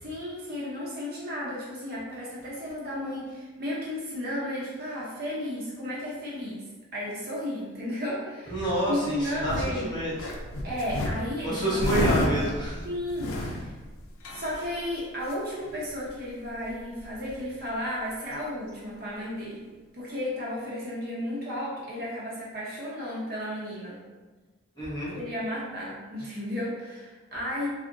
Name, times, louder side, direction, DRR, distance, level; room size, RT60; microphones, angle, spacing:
voice 1, 0.0-6.6 6.9-8.6 8.9-9.9 10.6-12.5 12.8-13.4 14.3-19.6 19.9-24.0 25.1-27.7, left 1 dB, 45° right, -6 dB, 0.7 m, -33 dB
voice 2, 8.5-10.3 11.4-12.9 13.4-13.5 24.8-25.1, right 1 dB, 20° left, -10 dB, 0.9 m, -29 dB
sound 1, 8.8-9.8 10.2-14.8 15.2-15.3 15.6-16.1 16.4-16.5 16.6-17.5 18.3-18.4, left 1 dB, 80° left, 0.4 m, -31 dB
3.5 x 2.1 x 2.5 m, 1.3 s
head